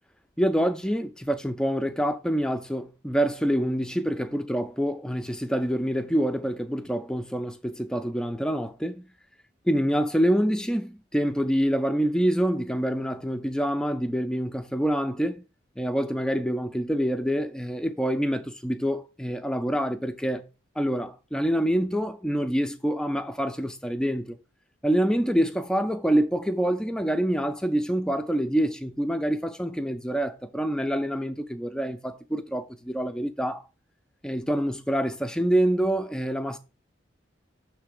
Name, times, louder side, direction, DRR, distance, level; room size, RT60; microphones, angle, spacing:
voice 1, 0.4-9.0 9.7-15.4 15.8-20.5 20.8-24.4 24.8-33.7 34.2-36.6, equal, 5° left, 0.4 m, -26 dB
6.7 x 3.3 x 4.9 m
head